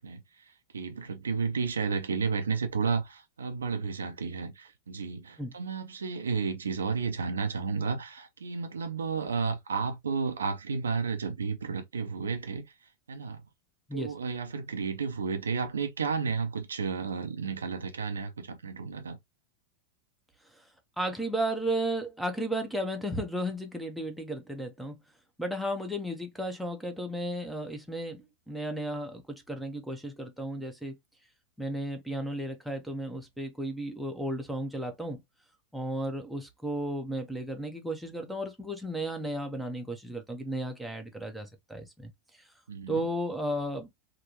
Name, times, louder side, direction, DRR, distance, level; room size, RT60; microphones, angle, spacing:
voice 1, 0.0-13.4 13.9-19.2 42.7-43.1, right 5 dB, 70° right, 0.6 m, -32 dB
voice 2, 21.0-24.9 25.4-31.0 31.6-35.2 35.7-42.1 42.9-44.0, right 1 dB, ahead, 0.8 m, -34 dB
3.5 x 2.2 x 2.9 m
figure-of-eight pair, 90°, 0 cm